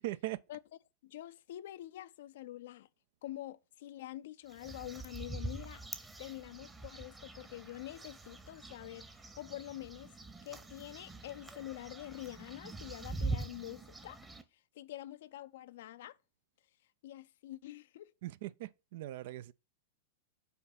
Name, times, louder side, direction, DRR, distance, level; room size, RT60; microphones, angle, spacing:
voice 1, 0.0-0.4 18.2-19.5, right 16 dB, 55° right, 0.4 m, -40 dB
voice 2, 1.0-2.9 3.2-10.1 10.4-14.2 14.7-16.2 17.0-18.1, left 14 dB, 60° left, 0.5 m, -46 dB
sound 1, 4.5-14.4, right 3 dB, 15° right, 0.9 m, -44 dB
5.6 x 4.8 x 5.8 m
figure-of-eight pair, 95°, 0 cm